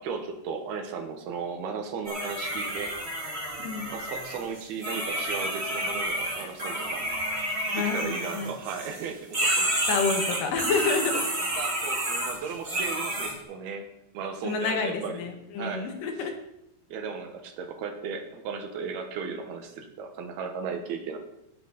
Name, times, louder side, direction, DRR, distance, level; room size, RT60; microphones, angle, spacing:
voice 1, 0.0-2.9 3.9-7.0 7.7-9.7 11.1-11.2 11.6-13.9 14.1-15.2 15.6-15.9 16.9-21.2, right 5 dB, 70° right, 5 dB, 3.0 m, -35 dB
sound 1, 2.0-9.0 9.3-13.3, right 1 dB, 20° right, 1.8 m, -30 dB
voice 2, 7.7-8.5 9.9-11.2 14.4-16.3, left 4 dB, 60° left, 4 dB, 2.7 m, -29 dB
17.5 x 7.9 x 4.0 m, 0.81 s
omnidirectional pair, 4.9 m